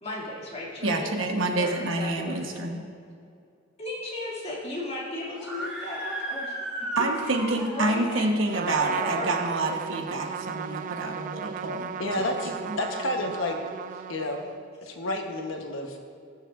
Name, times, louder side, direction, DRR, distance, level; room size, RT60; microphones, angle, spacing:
voice 1, 0.0-1.1 1.5-1.7 2.0-2.4 3.8-6.5 7.6-8.2 8.7-9.3 12.9-13.0, left 1 dB, 35° left, -5 dB, 2.3 m, -35 dB
voice 2, 0.8-2.8 7.0-12.8, right 2 dB, 75° right, 3 dB, 1.1 m, -28 dB
Screaming, 5.3-8.1, right 1 dB, 5° right, 1.3 m, -35 dB
Trumpet, 8.5-14.7, right 8 dB, 40° right, 0.3 m, -36 dB
voice 3, 12.0-13.6 14.1-14.4 14.8-16.0, left 2 dB, 90° left, 3 dB, 1.0 m, -30 dB
18.5 x 6.6 x 2.5 m, 2.4 s
head